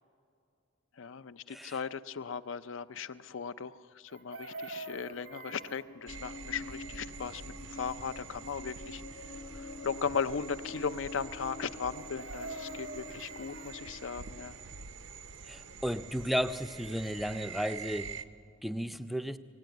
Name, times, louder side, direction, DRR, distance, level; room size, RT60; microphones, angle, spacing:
voice 1, 1.0-9.0 9.5-14.6, left 6 dB, 65° left, 13 dB, 0.5 m, -37 dB
Chicken rooster, 4.1-5.9 11.9-13.8 16.0-16.1 16.4-16.6, right 2 dB, 80° right, 1.5 m, -44 dB
sound 1, 5.0-14.5, left 2 dB, 85° left, 1.1 m, -47 dB
sound 2, 6.1-18.2, right 5 dB, 60° right, 0.7 m, -46 dB
voice 2, 15.5-18.2 18.6-19.4, equal, ahead, 10 dB, 0.5 m, -34 dB
19.0 x 17.0 x 9.2 m, 2.6 s
head